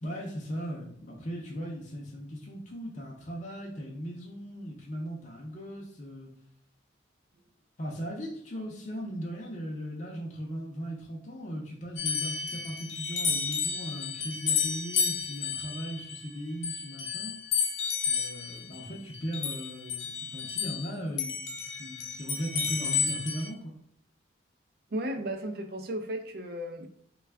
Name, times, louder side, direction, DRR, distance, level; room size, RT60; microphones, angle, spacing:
voice 1, 0.0-6.3 7.8-17.4 18.1-23.7, equal, 40° left, -3 dB, 0.5 m, -38 dB
sound 1, 12.0-20.9 21.2-23.5, left 6 dB, 75° left, 0.7 m, -32 dB
voice 2, 24.9-26.9, right 1 dB, 50° right, 5 dB, 0.4 m, -34 dB
3.3 x 2.3 x 3.3 m, 0.67 s
head